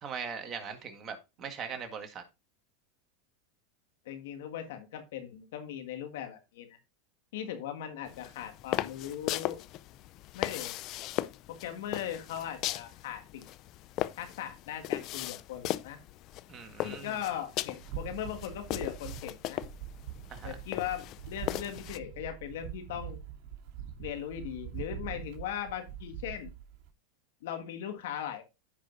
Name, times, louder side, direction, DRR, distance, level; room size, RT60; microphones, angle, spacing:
voice 1, 0.0-2.2 16.5-17.2 20.3-20.5, right 6 dB, 35° right, 1.7 m, -40 dB
voice 2, 4.0-6.8 7.3-9.6 10.3-10.7 11.5-13.4 14.2-16.0 16.8-19.6 20.4-23.2 24.0-26.5 27.4-28.4, left 10 dB, 75° left, 1.7 m, -39 dB
sound 1, 8.1-22.0, left 15 dB, 50° left, 0.4 m, -38 dB
sound 2, 17.8-26.9, right 10 dB, 55° right, 2.3 m, -43 dB
15.0 x 5.0 x 2.6 m
hypercardioid pair, 110°, 0 cm